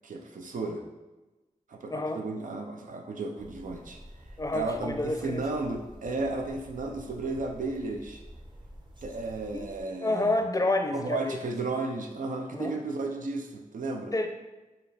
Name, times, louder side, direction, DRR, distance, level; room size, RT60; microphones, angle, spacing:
voice 1, 0.0-0.9 1.7-4.0 4.5-8.2 9.0-10.4 10.9-14.1, right 3 dB, 75° right, 3 dB, 0.5 m, -34 dB
voice 2, 1.9-2.2 4.4-5.4 9.5-9.6 10.0-11.4 12.5-12.7 14.1-14.3, left 2 dB, 25° left, 5 dB, 0.5 m, -29 dB
sound 1, 3.4-9.8, equal, 35° right, 0.8 m, -49 dB
4.8 x 2.4 x 3.2 m, 1.1 s
cardioid pair, 45°, 14 cm